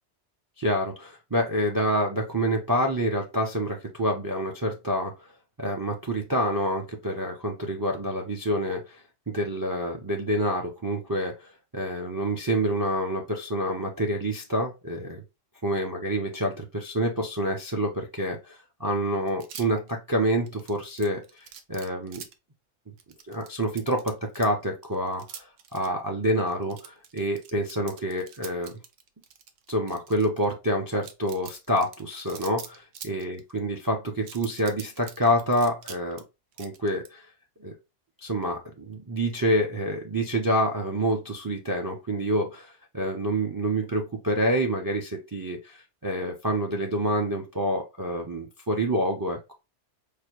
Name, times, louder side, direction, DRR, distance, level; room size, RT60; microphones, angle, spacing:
voice 1, 0.6-5.1 5.6-9.0 9.3-15.2 15.6-22.2 23.3-28.8 29.7-36.2 36.6-37.3 37.6-37.7 38.2-49.6, equal, 30° right, 2 dB, 0.4 m, -27 dB
sound 1, 19.3-19.9 20.5-22.3 23.0-24.5 24.8-25.9 26.4-30.5 31.0-33.6 34.2-36.2 36.5-37.1, right 8 dB, 85° right, 0.9 m, -44 dB
4.8 x 2.1 x 2.9 m, 0.26 s
omnidirectional pair, 1.3 m